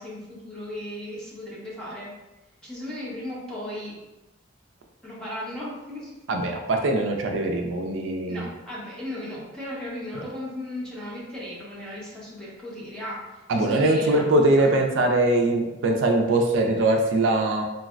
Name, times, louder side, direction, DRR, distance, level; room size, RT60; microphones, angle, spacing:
voice 1, 0.0-2.1 2.6-3.9 5.0-6.1 8.3-14.8, left 1 dB, 5° left, -8 dB, 0.9 m, -36 dB
voice 2, 6.3-8.5 13.5-17.6, right 2 dB, 75° right, 3 dB, 0.4 m, -22 dB
3.9 x 2.0 x 2.4 m, 1.0 s
head